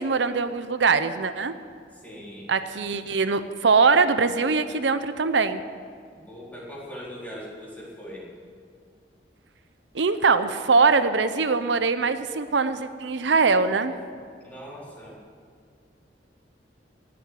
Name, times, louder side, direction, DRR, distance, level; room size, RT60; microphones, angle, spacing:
voice 1, 0.0-1.5 2.5-5.6 9.9-13.9, right 4 dB, 85° right, 11 dB, 0.7 m, -22 dB
voice 2, 2.0-2.5 6.3-8.3 14.4-15.2, equal, 10° left, -6 dB, 4.0 m, -40 dB
18.0 x 7.9 x 9.2 m, 2.1 s
head